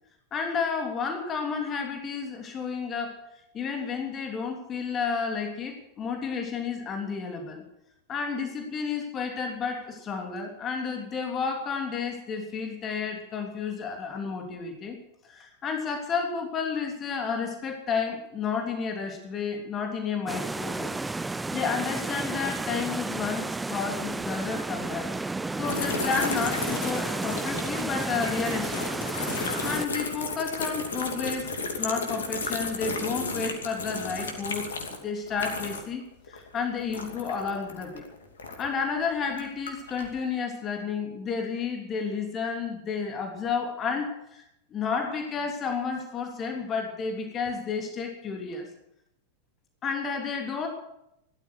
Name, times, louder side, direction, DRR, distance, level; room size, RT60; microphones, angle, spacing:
voice 1, 0.3-3.2 3.5-7.6 8.1-14.9 15.3-20.9 21.2-25.1 25.5-29.1 29.6-34.7 35.0-38.0 38.6-44.4 44.7-48.7 49.8-50.7, left 5 dB, 25° left, 3 dB, 3.2 m, -31 dB
sound 1, 20.3-29.9, right 3 dB, 10° right, 0.5 m, -32 dB
sound 2, 25.6-36.0 36.3-38.8 39.3-40.1, left 3 dB, 65° left, 2.7 m, -34 dB
17.5 x 13.0 x 6.5 m, 0.80 s
figure-of-eight pair, 90°, 0 cm